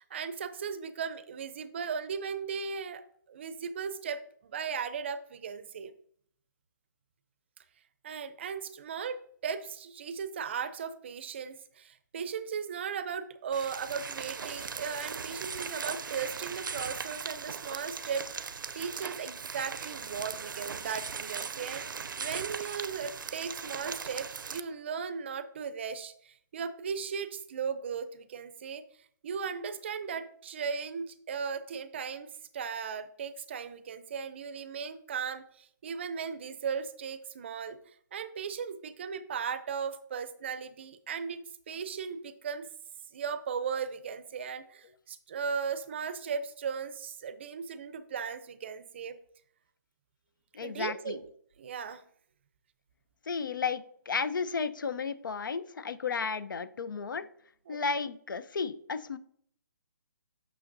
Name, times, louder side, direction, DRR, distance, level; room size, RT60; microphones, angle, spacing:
voice 1, 0.0-3.0 3.3-5.9 8.0-21.8 22.2-28.8 29.2-37.8 38.1-41.4 41.7-42.7 43.1-49.2 50.6-51.2 51.6-52.0 57.7-57.8, right 6 dB, 35° right, 12 dB, 0.5 m, -37 dB
sound 1, 13.5-24.6, right 6 dB, 85° right, 0.5 m, -39 dB
voice 2, 50.5-51.2 53.3-57.3 57.7-59.2, left 5 dB, 80° left, 14 dB, 0.6 m, -33 dB
8.7 x 6.2 x 2.6 m, 0.62 s
hypercardioid pair, 165°, 11 cm